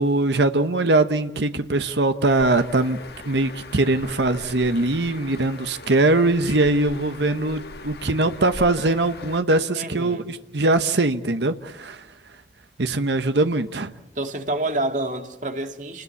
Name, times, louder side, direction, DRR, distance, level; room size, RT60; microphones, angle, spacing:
voice 1, 0.0-3.0 3.3-12.0 12.8-13.9, right 2 dB, 75° right, 1.1 m, -21 dB
Bird, 2.3-9.4, left 2 dB, 60° left, 1.4 m, -40 dB
voice 2, 9.7-10.3 14.2-16.0, right 2 dB, 45° right, 1.9 m, -28 dB
28.5 x 20.0 x 8.4 m
head